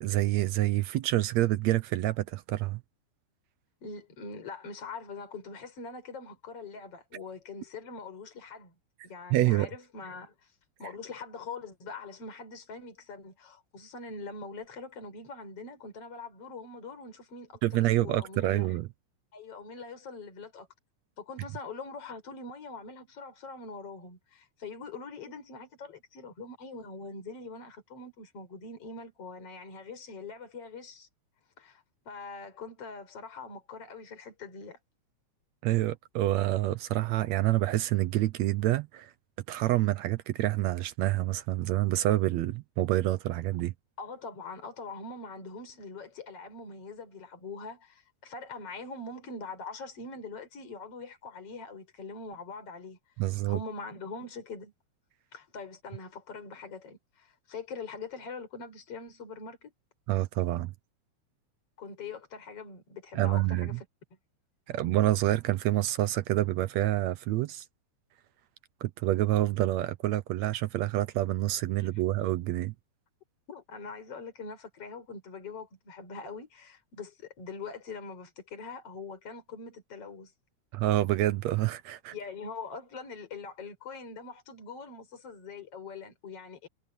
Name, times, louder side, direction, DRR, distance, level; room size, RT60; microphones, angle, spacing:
voice 1, 0.0-2.8 9.3-9.7 17.6-18.9 35.6-39.1 39.5-43.7 53.2-53.6 60.1-60.7 63.1-63.8 64.7-67.7 68.8-72.7 80.7-82.1, right 15 dB, 75° right, 1.8 m, -27 dB
voice 2, 3.8-8.7 9.0-10.5 10.8-18.7 19.3-20.7 21.2-31.1 31.6-34.8 44.0-53.0 53.5-54.7 55.3-59.7 61.8-63.8 73.5-80.3 82.1-86.7, left 4 dB, 50° left, 5.9 m, -43 dB
omnidirectional pair, 3.5 m